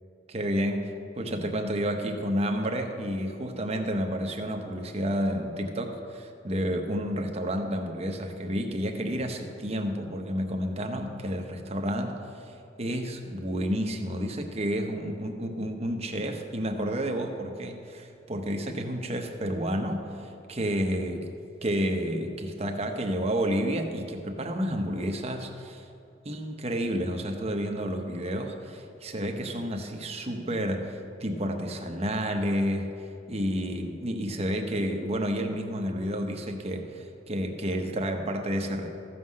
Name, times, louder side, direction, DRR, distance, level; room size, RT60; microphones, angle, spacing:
voice 1, 0.3-21.3 21.6-25.8 26.2-32.9 33.3-38.9, equal, 35° right, 4 dB, 1.0 m, -30 dB
14.5 x 5.7 x 6.4 m, 2.5 s
head